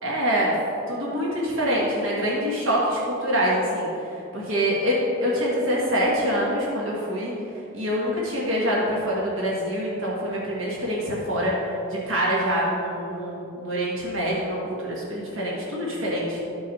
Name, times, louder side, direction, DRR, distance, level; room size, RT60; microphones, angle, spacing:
voice 1, 0.0-0.5 0.9-3.9 4.3-7.3 7.7-16.4, equal, 60° right, -5 dB, 1.6 m, -25 dB
13.0 x 5.0 x 4.2 m, 2.9 s
head